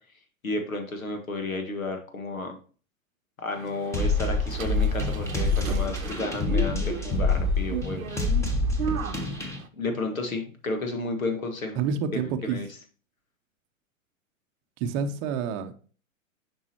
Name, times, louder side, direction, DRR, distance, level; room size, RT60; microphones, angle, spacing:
voice 1, 0.4-2.6 3.4-8.0 9.7-11.8 12.5-12.7, left 2 dB, 85° left, 1.6 m, -32 dB
sound 1, 3.5-9.7, right 7 dB, 90° right, 0.7 m, -36 dB
sound 2, 3.9-9.6, left 3 dB, 5° left, 0.9 m, -26 dB
voice 2, 11.8-12.6 14.8-15.7, right 6 dB, 30° right, 0.7 m, -28 dB
7.3 x 5.4 x 2.9 m
hypercardioid pair, 115°, 40 cm